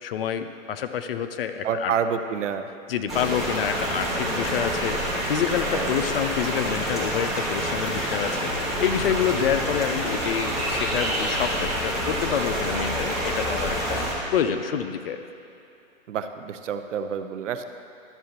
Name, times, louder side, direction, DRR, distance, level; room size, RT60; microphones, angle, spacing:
voice 1, 0.0-1.9 2.9-15.2, left 8 dB, 50° left, 9 dB, 0.5 m, -28 dB
voice 2, 1.6-2.7 5.7-6.1 16.1-17.6, right 7 dB, 65° right, 9 dB, 0.7 m, -28 dB
sound 1, 3.1-14.1, equal, ahead, 1.6 m, -27 dB
12.5 x 7.3 x 2.9 m, 2.6 s
hypercardioid pair, 140°, 39 cm